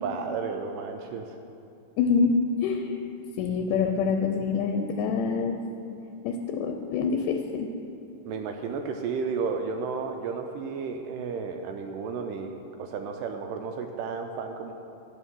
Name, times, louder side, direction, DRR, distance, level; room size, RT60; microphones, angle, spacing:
voice 1, 0.0-1.4 8.3-14.7, right 5 dB, 80° right, 4 dB, 2.0 m, -33 dB
voice 2, 2.0-3.0 3.4-5.6 6.2-7.7, left 5 dB, 80° left, 4 dB, 2.0 m, -26 dB
11.0 x 5.5 x 6.1 m, 2.7 s
omnidirectional pair, 4.1 m